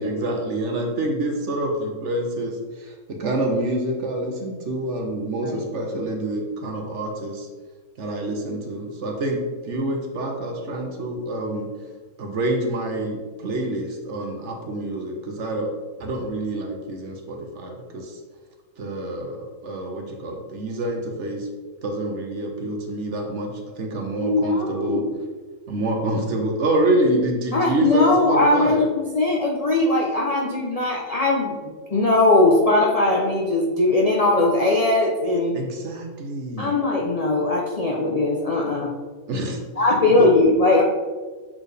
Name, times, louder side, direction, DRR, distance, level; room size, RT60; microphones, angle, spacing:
voice 1, 0.0-7.5 8.0-11.7 12.2-15.7 16.0-18.1 18.8-21.5 21.8-23.5 23.8-25.0 25.7-28.8 35.5-36.7 39.3-39.6 39.9-40.3, right 1 dB, 55° right, 2 dB, 1.0 m, -27 dB
voice 2, 24.2-25.1 27.5-28.9 29.1-35.5 36.6-38.9 39.8-40.8, left 2 dB, 55° left, -2 dB, 0.4 m, -20 dB
7.3 x 4.3 x 3.3 m, 1.4 s
omnidirectional pair, 1.7 m